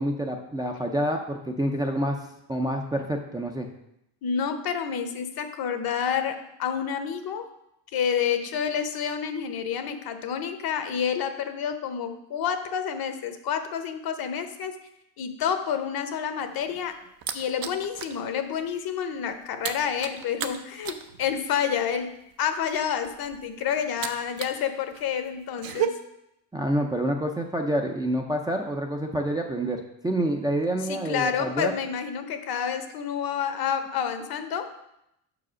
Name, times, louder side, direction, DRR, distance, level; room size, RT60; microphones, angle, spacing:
voice 1, 0.0-2.2 2.5-3.7 26.5-31.7, right 1 dB, 10° right, 1 dB, 0.4 m, -27 dB
voice 2, 4.2-7.5 7.9-14.8 15.2-17.0 17.3-22.1 22.4-25.9 30.9-34.7, left 7 dB, 55° left, 8 dB, 0.8 m, -29 dB
sound 1, 16.4-18.2 18.6-18.8 19.0-24.6 24.9-25.9, right 11 dB, 55° right, 0.6 m, -34 dB
5.6 x 4.9 x 6.1 m, 0.81 s
cardioid pair, 140°, 43 cm